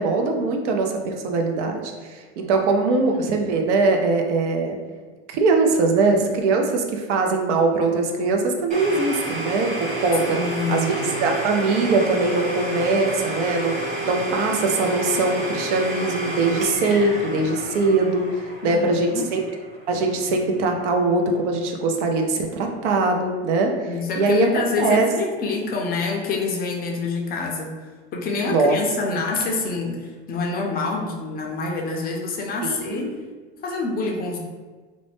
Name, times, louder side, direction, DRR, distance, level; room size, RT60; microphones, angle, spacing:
voice 1, 0.0-4.8 5.3-10.4 10.7-18.3 18.6-19.4 19.9-24.5 24.8-25.1 28.5-28.8 32.6-33.1, right 3 dB, 80° right, 3 dB, 0.6 m, -22 dB
Domestic sounds home sounds, 8.7-20.3, right 1 dB, 20° right, 1.2 m, -30 dB
voice 2, 10.3-11.3 18.6-19.3 23.9-27.7 28.1-33.1 33.6-34.4, left 3 dB, 25° left, 0 dB, 0.4 m, -27 dB
2.5 x 2.1 x 3.3 m, 1.4 s
hypercardioid pair, 105°, 35 cm